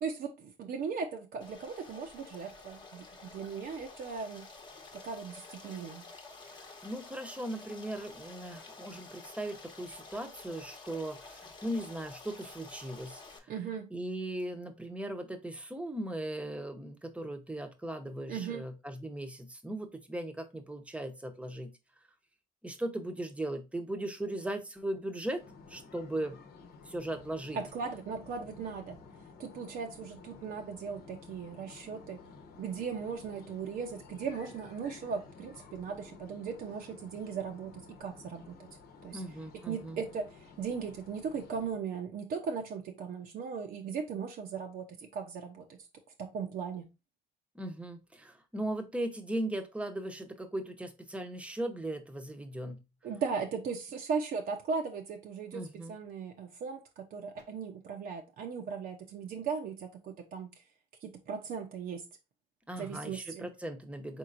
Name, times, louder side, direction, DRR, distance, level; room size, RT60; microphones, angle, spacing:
voice 1, 0.0-4.4 4.9-6.1 13.5-13.9 18.3-18.7 27.5-29.0 29.4-32.2 32.6-38.7 39.0-39.2 39.6-45.9 46.2-46.9 53.0-60.5 61.0-62.1 62.8-63.5, right 6 dB, 60° right, 0.7 m, -38 dB
Stream, 1.4-13.4, left 3 dB, 25° left, 1.0 m, -50 dB
voice 2, 6.5-13.5 13.9-21.7 22.6-25.4 25.7-26.4 26.9-27.6 39.1-40.0 47.5-52.8 55.5-56.0 62.7-64.2, right 1 dB, 5° right, 0.8 m, -38 dB
sound 1, 25.4-41.8, left 4 dB, 70° left, 0.9 m, -53 dB
4.5 x 3.7 x 2.5 m
cardioid pair, 110°, 17 cm